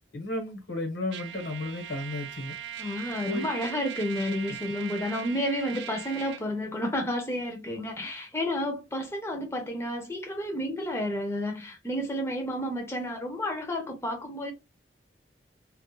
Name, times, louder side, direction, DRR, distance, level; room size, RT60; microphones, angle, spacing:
voice 1, 0.1-2.5 3.3-3.8 4.5-4.6, left 2 dB, 80° left, 1.0 m, -34 dB
Trumpet, 1.1-6.4, right 10 dB, 65° right, 0.3 m, -40 dB
voice 2, 2.8-14.5, equal, 15° left, 0.4 m, -31 dB
2.3 x 2.1 x 2.9 m
head